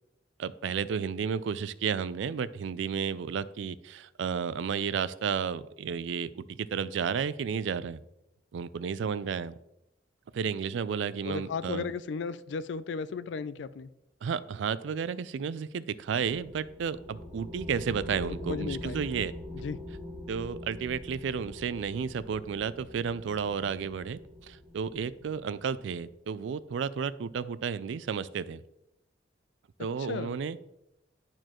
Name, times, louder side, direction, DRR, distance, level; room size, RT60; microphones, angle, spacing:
voice 1, 0.4-8.0 8.5-9.5 10.3-11.9 14.2-19.3 20.3-28.6 29.8-30.6, right 6 dB, 75° right, 17 dB, 0.3 m, -32 dB
voice 2, 11.2-13.9 18.5-19.0 19.5-19.8 30.0-30.4, left 5 dB, 70° left, 15 dB, 0.4 m, -35 dB
sound 1, 16.1-26.1, left 1 dB, 10° right, 1.3 m, -43 dB
10.5 x 4.5 x 3.0 m, 0.84 s
head